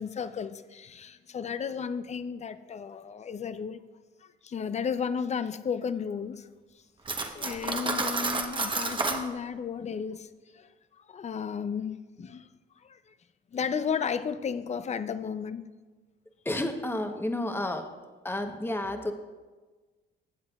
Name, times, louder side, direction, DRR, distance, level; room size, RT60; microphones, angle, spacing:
voice 1, 0.0-3.8 4.4-6.5 7.3-10.3 10.5-10.7 11.1-12.5 12.8-13.1 13.5-15.7, left 6 dB, 35° left, 0.5 m, -33 dB
Cutlery silverware, 7.1-9.2, right 3 dB, 25° right, 0.9 m, -30 dB
voice 2, 16.4-17.9 18.2-19.1, left 1 dB, 10° left, 1.0 m, -31 dB
15.5 x 7.5 x 2.4 m
cardioid pair, 90°, 20 cm